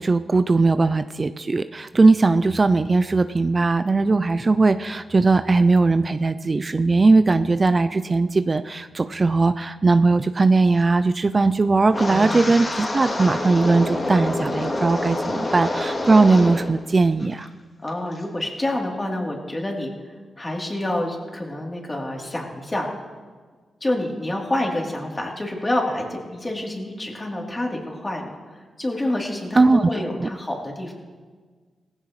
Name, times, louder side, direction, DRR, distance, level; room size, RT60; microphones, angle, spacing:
voice 1, 0.0-17.5 29.6-30.3, right 3 dB, 40° right, 12 dB, 0.5 m, -19 dB
Wind, 11.9-16.7 17.0-17.5 17.9-18.2, left 2 dB, 40° left, 2.8 m, -27 dB
voice 2, 12.1-12.5 17.8-19.9 20.4-22.9 23.8-30.9, left 1 dB, 25° left, -1 dB, 3.4 m, -28 dB
17.5 x 15.5 x 3.2 m, 1.5 s
supercardioid pair, 50°, 0 cm